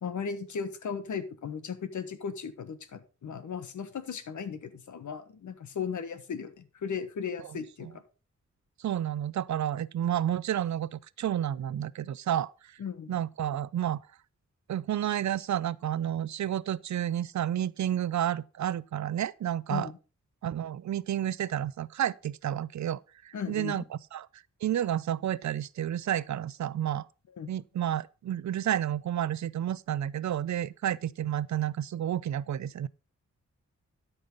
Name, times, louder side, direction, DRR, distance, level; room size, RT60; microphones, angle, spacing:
voice 1, 0.0-7.9 12.8-13.2 19.7-19.9 23.3-23.8 27.4-27.5, left 6 dB, 85° left, 1.4 m, -36 dB
voice 2, 7.4-7.9 8.8-12.8 13.1-14.0 14.7-19.9 20.4-23.8 24.1-24.3 24.6-27.1 27.5-32.9, right 11 dB, 75° right, 0.5 m, -31 dB
12.0 x 5.6 x 5.2 m
wide cardioid pair, 90°, 29 cm